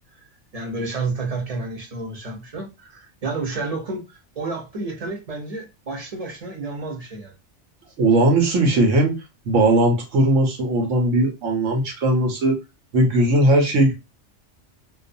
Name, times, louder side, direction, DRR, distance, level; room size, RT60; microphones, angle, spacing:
voice 1, 0.5-7.3, right 3 dB, 35° right, 0.8 m, -30 dB
voice 2, 8.0-9.1 9.5-12.6 12.9-13.9, right 1 dB, 90° right, 1.2 m, -18 dB
2.5 x 2.3 x 2.6 m
omnidirectional pair, 1.2 m